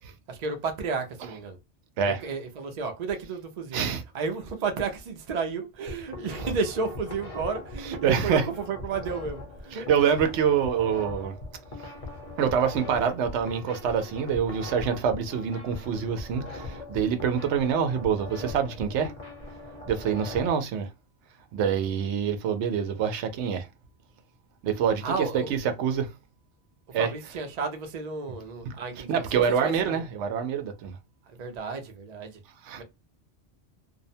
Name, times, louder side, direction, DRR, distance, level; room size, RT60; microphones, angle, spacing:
voice 1, 0.3-1.6 2.0-3.8 4.1-9.9 25.0-25.6 27.0-30.0 31.3-32.4 32.8-32.9, right 4 dB, 45° right, 0.6 m, -32 dB
voice 2, 3.7-4.0 7.8-8.5 9.7-11.3 11.8-11.9 12.4-19.1 19.9-20.9 21.5-23.7 24.6-26.1 26.9-27.1 28.6-28.8 29.1-31.0 32.6-32.8, right 7 dB, 90° right, 0.9 m, -26 dB
sound 1, 5.7-20.5, left 2 dB, 35° left, 0.7 m, -40 dB
2.6 x 2.1 x 2.6 m
omnidirectional pair, 1.1 m